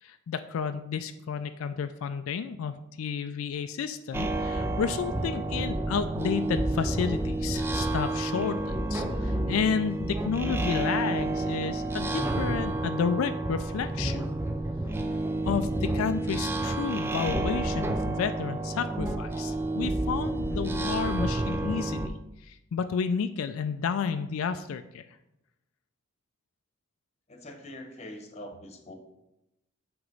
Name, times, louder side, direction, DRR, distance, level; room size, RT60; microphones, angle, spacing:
voice 1, 0.0-14.2 15.5-22.1 22.4-25.0, left 6 dB, 85° left, 9 dB, 0.3 m, -31 dB
sound 1, 4.1-22.1, right 2 dB, 10° right, 0.4 m, -30 dB
voice 2, 27.3-29.0, left 1 dB, 30° left, 4 dB, 1.0 m, -43 dB
8.0 x 3.0 x 5.3 m, 0.87 s
head